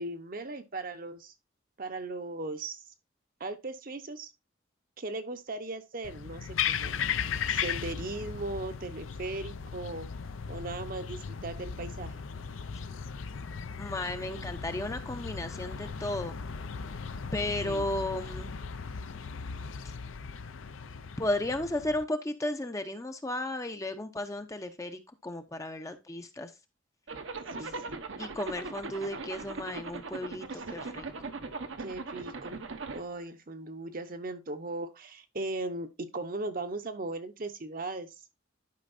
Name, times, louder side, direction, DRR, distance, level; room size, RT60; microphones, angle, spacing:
voice 1, 0.0-1.3 1.8-2.8 3.4-4.3 5.0-7.0 7.5-10.1 10.5-12.2 17.6-17.9 27.6-28.0 30.5-30.6 31.8-32.6 32.9-35.9 36.1-38.1, right 2 dB, 45° right, 0.8 m, -38 dB
sound 1, 6.0-22.0, left 6 dB, 85° left, 0.6 m, -37 dB
voice 2, 13.8-16.4 17.3-18.5 21.2-26.5 27.6-27.7 28.2-31.1, left 1 dB, 15° left, 0.6 m, -34 dB
Zipper (clothing), 27.1-33.0, right 3 dB, 75° right, 0.9 m, -39 dB
11.5 x 5.1 x 2.5 m
head